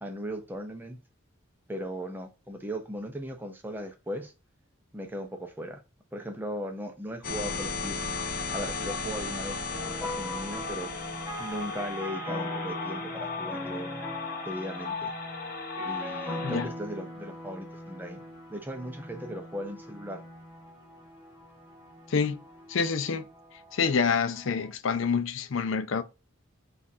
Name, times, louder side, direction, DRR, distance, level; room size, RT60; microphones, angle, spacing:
voice 1, 0.0-1.0 1.7-4.3 4.9-5.8 6.1-8.1 8.5-9.6 9.8-10.9 11.4-14.0 14.4-15.1 15.8-18.2 18.5-20.2, equal, 10° right, 0.6 m, -38 dB
sound 1, 7.2-16.6, left 4 dB, 45° left, 0.8 m, -35 dB
sound 2, 9.7-24.7, left 1 dB, 25° left, 1.4 m, -41 dB
voice 2, 22.1-22.4 22.7-23.3 23.7-26.0, left 5 dB, 65° left, 0.5 m, -27 dB
6.0 x 2.5 x 2.7 m
head